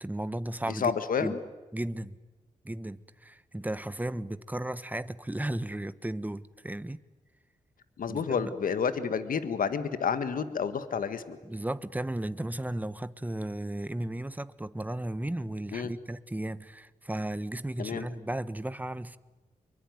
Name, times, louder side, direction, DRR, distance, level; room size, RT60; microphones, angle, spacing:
voice 1, 0.0-1.3 1.7-2.2 2.6-7.0 8.1-8.5 11.4-19.2, right 1 dB, 10° right, 1.2 m, -35 dB
voice 2, 0.7-1.4 8.0-11.4 15.7-15.9 17.8-18.1, left 6 dB, 70° left, 1.6 m, -30 dB
24.0 x 23.5 x 9.5 m
supercardioid pair, 50°, 15 cm